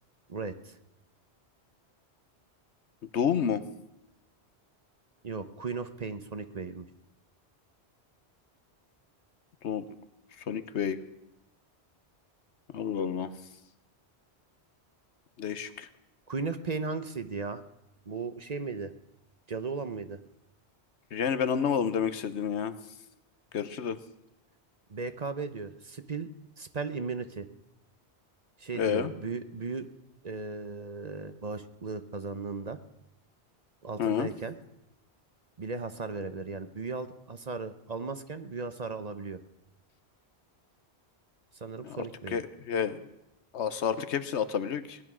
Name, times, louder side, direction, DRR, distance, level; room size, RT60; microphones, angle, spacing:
voice 1, 0.3-0.7 5.2-6.9 16.3-17.6 18.1-18.9 19.5-20.2 24.9-26.3 26.6-27.5 28.6-29.9 30.2-32.8 33.8-34.6 35.6-39.4 41.5-42.4, right 4 dB, 40° right, 10 dB, 0.9 m, -36 dB
voice 2, 3.1-3.6 9.6-9.8 10.5-11.0 12.7-13.3 15.4-15.9 21.1-22.8 23.5-24.0 28.7-29.1 34.0-34.3 41.8-42.0 42.3-43.1 43.5-45.0, left 7 dB, 80° left, 13 dB, 1.2 m, -29 dB
18.0 x 11.0 x 6.2 m, 0.89 s
omnidirectional pair, 1.1 m